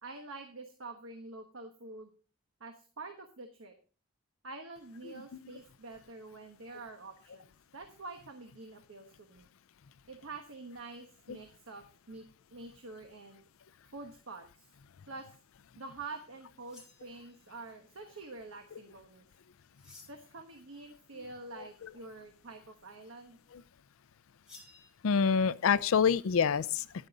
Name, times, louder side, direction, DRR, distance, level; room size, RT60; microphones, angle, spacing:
voice 1, 0.0-2.1 2.6-3.7 4.4-9.5 10.1-12.2 12.5-13.4 13.9-14.7 15.1-15.3 15.8-19.3 20.1-23.4, right 3 dB, 70° right, 1.1 m, -47 dB
sound 1, 16.6-17.6 19.7-20.4 24.5-24.9, left 3 dB, 5° right, 3.2 m, -56 dB
voice 2, 25.0-27.1, left 6 dB, 75° left, 0.4 m, -26 dB
10.5 x 9.0 x 4.0 m
head